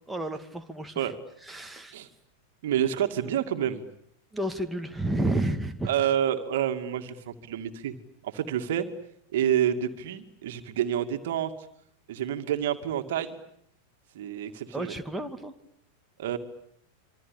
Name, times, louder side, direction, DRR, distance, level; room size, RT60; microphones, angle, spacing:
voice 1, 0.1-1.1 1.4-2.0 4.3-5.9 14.7-15.5, right 1 dB, 5° right, 4 dB, 2.4 m, -31 dB
voice 2, 2.6-3.8 5.9-8.0 8.2-8.9 9.3-11.5 12.1-13.4 14.1-14.9 16.2-16.4, right 10 dB, 55° right, 7 dB, 2.4 m, -28 dB
26.5 x 26.0 x 8.5 m, 0.74 s
figure-of-eight pair, 90°, 0 cm